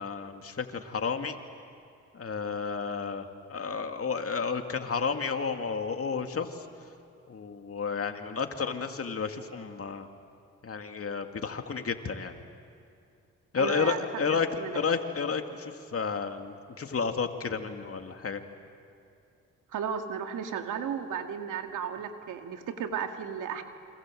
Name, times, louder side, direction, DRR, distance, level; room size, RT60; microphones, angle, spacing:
voice 1, 0.0-1.3 2.1-6.6 7.3-10.1 10.6-12.3 13.5-18.4, left 5 dB, 50° left, 6 dB, 2.4 m, -31 dB
voice 2, 13.6-14.1 14.6-14.8 19.7-23.6, right 7 dB, 80° right, 6 dB, 2.0 m, -34 dB
28.0 x 26.0 x 7.7 m, 2.5 s
supercardioid pair, 55°, 31 cm